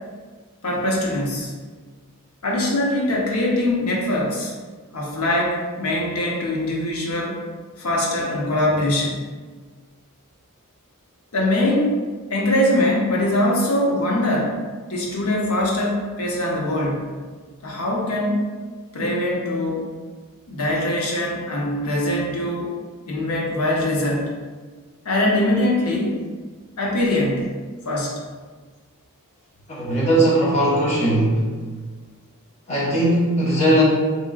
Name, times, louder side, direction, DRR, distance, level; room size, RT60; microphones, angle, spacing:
voice 1, 0.6-1.5 2.4-4.5 4.9-7.4 7.8-9.2 11.3-11.9 12.3-14.5 14.9-17.1 17.6-18.5 18.9-19.8 20.5-22.7 23.1-24.3 25.0-26.2 26.8-27.5 27.9-28.1, left 1 dB, 80° left, -3 dB, 0.8 m, -22 dB
voice 2, 29.7-31.4 32.7-33.8, right 1 dB, 30° left, -8 dB, 0.9 m, -19 dB
3.7 x 2.9 x 2.3 m, 1.4 s
head